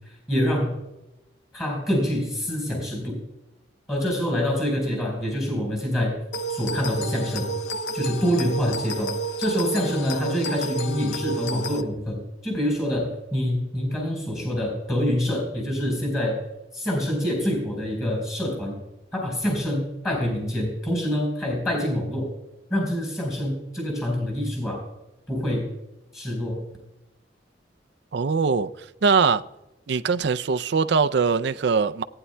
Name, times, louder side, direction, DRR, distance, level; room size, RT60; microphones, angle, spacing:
voice 1, 0.3-0.7 1.5-3.2 3.9-6.2 6.5-7.5 7.9-16.4 16.7-18.8 19.1-22.3 22.7-24.8 25.3-25.7 26.1-26.6, equal, 15° left, 3.9 m, -26 dB
sound 1, 6.3-11.8, right 2 dB, 70° left, 0.6 m, -30 dB
voice 2, 28.1-28.7 29.0-29.4 29.9-32.0, right 5 dB, 65° right, 0.4 m, -21 dB
18.0 x 9.6 x 2.2 m
head